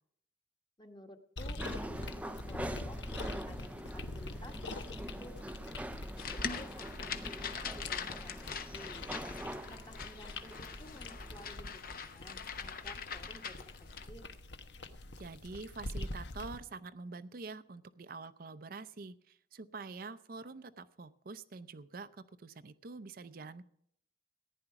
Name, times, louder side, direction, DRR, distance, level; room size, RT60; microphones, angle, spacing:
voice 1, 0.8-3.0 3.2-6.0 6.3-9.1 9.5-14.3, left 1 dB, 25° left, 5 dB, 1.4 m, -54 dB
sound 1, 1.4-16.6, left 2 dB, 75° left, 1.1 m, -45 dB
sound 2, 1.6-11.5, right 1 dB, 10° right, 0.5 m, -44 dB
sound 3, 6.2-14.1, left 6 dB, 50° left, 1.0 m, -43 dB
voice 2, 15.2-23.6, right 4 dB, 55° right, 11 dB, 0.6 m, -46 dB
14.5 x 10.0 x 5.8 m, 0.68 s
head